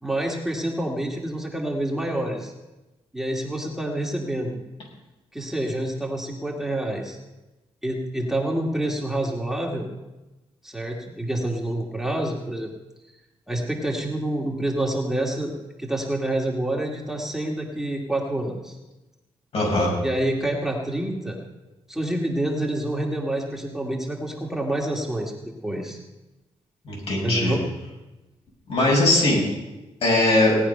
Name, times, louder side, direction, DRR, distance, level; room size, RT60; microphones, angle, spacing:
voice 1, 0.0-2.5 3.1-4.5 5.3-7.2 7.8-9.9 10.6-12.7 13.5-15.5 15.8-18.8 20.0-21.4 21.9-25.3 25.6-26.0 27.2-27.6, right 1 dB, 5° right, -1 dB, 2.1 m, -27 dB
voice 2, 19.5-19.9 26.8-27.5 28.7-29.5 30.0-30.6, left 2 dB, 70° left, -2 dB, 6.7 m, -20 dB
18.0 x 9.6 x 5.6 m, 1.0 s
cardioid pair, 105°, 11 cm